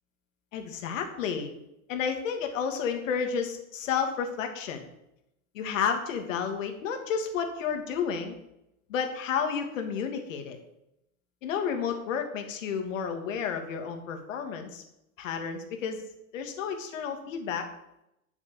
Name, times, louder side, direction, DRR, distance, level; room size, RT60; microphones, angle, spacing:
voice 1, 0.5-1.5 1.9-4.9 5.5-8.3 8.9-10.6 11.4-14.8 15.2-16.0 16.3-17.6, left 6 dB, 60° left, 5 dB, 2.7 m, -31 dB
12.5 x 7.1 x 7.3 m, 0.84 s
supercardioid pair, 155°, 44 cm